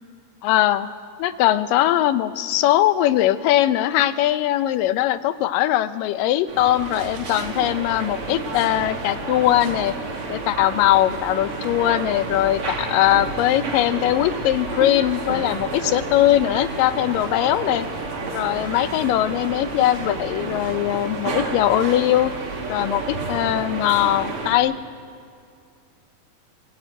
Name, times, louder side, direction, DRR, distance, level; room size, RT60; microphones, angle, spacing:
voice 1, 0.4-0.9 1.2-9.9 10.3-17.9 18.3-22.3 22.7-24.7, left 13 dB, 75° left, 12 dB, 2.2 m, -20 dB
sound 1, 6.5-24.6, right 3 dB, 40° right, 2.8 m, -30 dB
25.0 x 18.0 x 8.9 m, 2.4 s
omnidirectional pair, 4.3 m